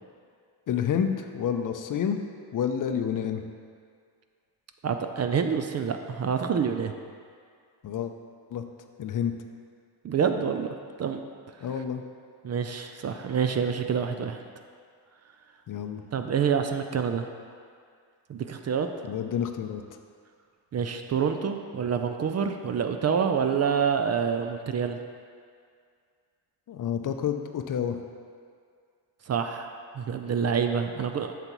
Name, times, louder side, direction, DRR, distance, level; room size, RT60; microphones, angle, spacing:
voice 1, 0.7-2.2 2.5-3.4 7.8-8.1 8.5-8.6 9.0-9.3 11.6-12.0 15.7-16.0 19.1-19.8 26.7-28.0, left 8 dB, 50° left, 7 dB, 0.5 m, -29 dB
voice 2, 4.8-6.9 10.0-10.7 11.0-11.2 12.4-14.4 16.1-17.3 18.3-18.9 20.7-25.0 29.3-31.4, right 7 dB, 40° right, 6 dB, 0.4 m, -27 dB
7.9 x 6.7 x 3.0 m, 2.2 s
cardioid pair, 115°, 41 cm